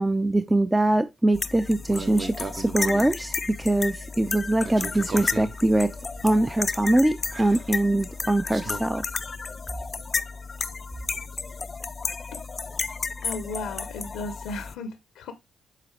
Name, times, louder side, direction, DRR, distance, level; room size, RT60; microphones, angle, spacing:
voice 1, 0.0-5.9 6.2-9.0, right 1 dB, 15° right, 0.5 m, -23 dB
sound 1, 1.3-14.8, left 4 dB, 40° left, 0.4 m, -33 dB
sound 2, 1.9-3.1 4.6-8.8, right 4 dB, 40° right, 0.9 m, -38 dB
voice 2, 13.2-15.3, left 3 dB, 80° left, 0.7 m, -35 dB
7.5 x 4.1 x 3.2 m
supercardioid pair, 50°, 0 cm